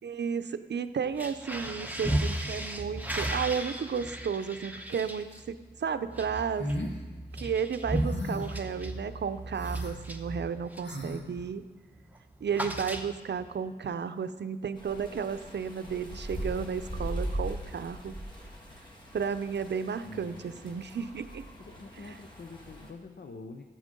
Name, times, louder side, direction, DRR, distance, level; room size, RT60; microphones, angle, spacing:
voice 1, 0.0-6.7 7.4-11.6 12.4-18.2 19.1-21.5 22.0-22.2, right 6 dB, 80° right, 11 dB, 0.6 m, -33 dB
sound 1, 1.1-11.0 11.3-11.6 11.9-13.5, right 1 dB, 10° right, 0.9 m, -35 dB
sound 2, 6.6-6.9 8.0-8.6 9.5-9.9 10.8-11.2, equal, 85° left, 1.7 m, -35 dB
sound 3, 14.8-22.9, right 1 dB, 25° left, 2.0 m, -40 dB
voice 2, 20.0-20.8 21.6-23.6, left 3 dB, 60° left, 5 dB, 0.7 m, -46 dB
12.5 x 7.9 x 5.3 m, 1.3 s
wide cardioid pair, 100°, 18 cm